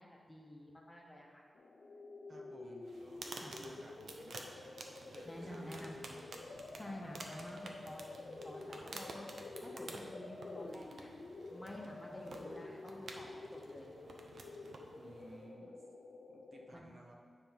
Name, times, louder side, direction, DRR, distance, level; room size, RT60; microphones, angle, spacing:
voice 1, 0.0-1.4 3.4-3.5 5.2-6.0 6.8-9.3 9.6-11.1 11.5-13.9 16.7-17.0, left 1 dB, 10° left, -1 dB, 0.9 m, -50 dB
sound 1, 1.5-16.7, left 3 dB, 60° left, 0.5 m, -50 dB
voice 2, 2.3-4.6 5.1-6.2 15.0-15.8 16.3-17.2, right 1 dB, 40° right, 0 dB, 0.8 m, -57 dB
sound 2, 2.8-15.5, right 3 dB, 70° right, 0.7 m, -52 dB
9.4 x 3.5 x 5.7 m, 2.2 s
wide cardioid pair, 155°, 0 cm